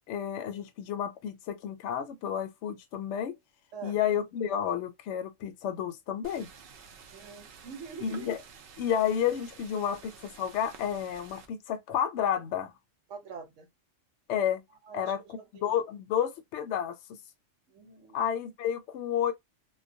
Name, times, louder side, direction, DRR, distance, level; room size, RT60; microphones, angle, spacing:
voice 1, 0.1-3.4 3.8-6.5 8.0-8.4 8.8-12.7 14.3-14.6 14.9-17.0 18.1-19.3, left 9 dB, 70° left, 0.8 m, -31 dB
sound 1, 6.2-11.5, right 6 dB, 60° right, 0.7 m, -51 dB
voice 2, 7.1-8.3 13.1-13.7 14.9-15.7 17.7-18.2, right 6 dB, 75° right, 1.1 m, -45 dB
2.2 x 2.2 x 2.6 m
omnidirectional pair, 1.3 m